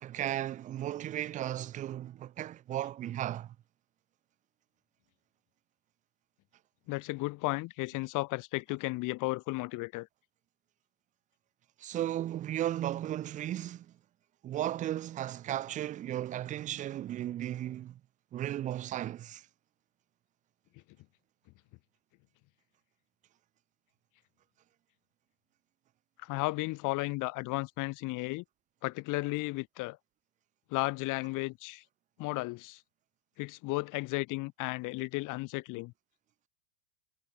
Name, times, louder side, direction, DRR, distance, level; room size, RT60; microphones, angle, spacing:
voice 1, 0.0-3.5 11.8-13.9 14.4-18.0 18.3-19.4, right 12 dB, 20° right, 0.4 m, -35 dB
voice 2, 6.9-10.1 26.2-28.4 28.8-30.0 30.7-31.8 32.2-32.8 33.4-35.9, left 23 dB, 45° left, 2.4 m, -34 dB
hypercardioid pair, 110°, 42 cm